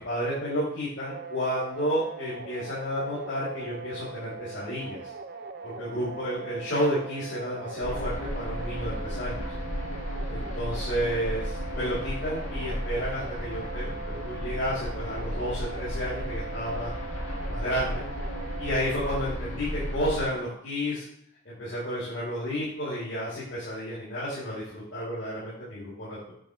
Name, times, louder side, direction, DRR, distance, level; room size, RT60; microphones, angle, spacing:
voice 1, 0.0-5.0 5.6-9.4 10.3-16.9 17.5-18.0 18.6-21.0 21.4-26.3, equal, 60° left, -10 dB, 3.3 m, -31 dB
sound 1, 1.1-19.1, right 4 dB, 45° right, 0.6 m, -41 dB
sound 2, 7.8-20.2, equal, 85° left, 2.1 m, -34 dB
8.7 x 4.3 x 5.0 m, 0.70 s
head